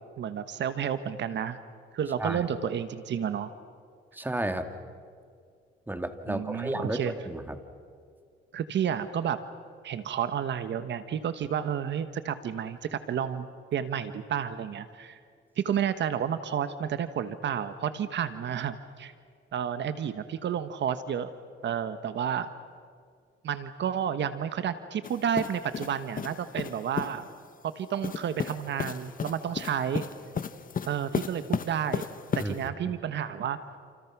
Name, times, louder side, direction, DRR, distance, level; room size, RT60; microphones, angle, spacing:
voice 1, 0.2-1.6 1.9-3.5 6.3-7.1 8.5-9.4 9.8-15.2 15.6-19.1 19.5-21.3 21.6-22.5 23.4-27.3 27.6-30.0 30.9-32.1 32.3-33.8, right 8 dB, 65° right, 11 dB, 1.3 m, -31 dB
voice 2, 4.1-4.7 5.9-7.6 32.4-32.6, right 1 dB, 10° right, 7 dB, 2.3 m, -32 dB
sound 1, 25.0-27.2 28.0-32.7, left 7 dB, 45° left, 1.3 m, -35 dB
29.5 x 28.0 x 6.1 m, 2.1 s
cardioid pair, 90°, 20 cm